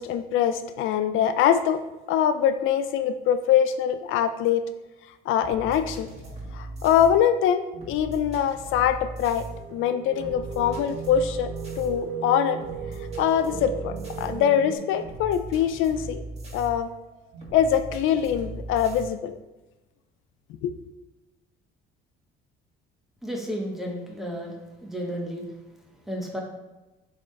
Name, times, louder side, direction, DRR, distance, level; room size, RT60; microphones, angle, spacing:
voice 1, 0.0-1.8 2.1-4.7 5.3-6.1 6.5-12.6 13.2-16.2 16.5-16.9 17.5-19.4 20.6-20.8, left 9 dB, 70° left, 10 dB, 0.4 m, -23 dB
sound 1, 5.4-19.0, right 2 dB, 30° right, 1.7 m, -39 dB
sound 2, 9.3-14.8, right 8 dB, 85° right, 0.8 m, -36 dB
voice 2, 23.2-24.6 24.8-25.5 26.1-26.4, equal, ahead, -1 dB, 1.1 m, -32 dB
7.9 x 3.7 x 3.3 m, 1.1 s
cardioid pair, 135°, 21 cm